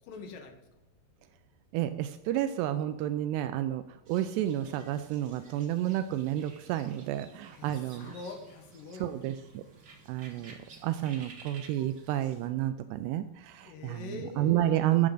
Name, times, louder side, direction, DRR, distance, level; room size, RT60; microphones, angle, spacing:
voice 1, 0.0-0.5 7.6-9.6 13.6-15.0, left 4 dB, 65° left, 5 dB, 2.6 m, -44 dB
voice 2, 1.7-3.8 4.1-8.1 9.0-9.6 10.1-10.6 10.8-15.1, right 12 dB, 85° right, 10 dB, 2.6 m, -30 dB
sound 1, 4.1-12.5, right 4 dB, 55° right, 1.2 m, -54 dB
12.0 x 7.7 x 3.9 m, 0.95 s
omnidirectional pair, 4.8 m